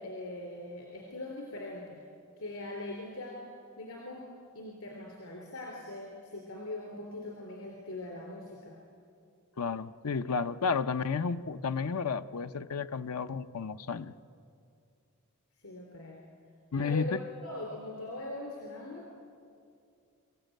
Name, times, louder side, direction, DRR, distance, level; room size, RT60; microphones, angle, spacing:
voice 1, 0.0-2.0 2.4-3.4 3.8-8.8 15.5-16.3 16.7-19.1, left 1 dB, 70° left, -1 dB, 3.3 m, -41 dB
voice 2, 9.6-14.1 16.7-17.2, left 5 dB, 90° left, 11 dB, 0.7 m, -32 dB
25.5 x 14.5 x 9.1 m, 2.5 s
head